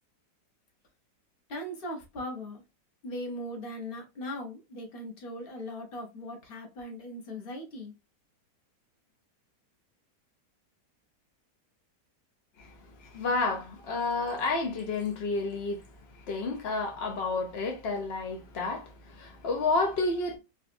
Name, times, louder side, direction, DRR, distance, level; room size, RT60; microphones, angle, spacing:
voice 1, 1.5-2.6 3.0-7.9, left 1 dB, 45° left, 0.8 m, -39 dB
voice 2, 13.0-15.8 16.2-20.4, left 3 dB, 80° left, 0.5 m, -30 dB
3.8 x 2.3 x 2.5 m
omnidirectional pair, 1.8 m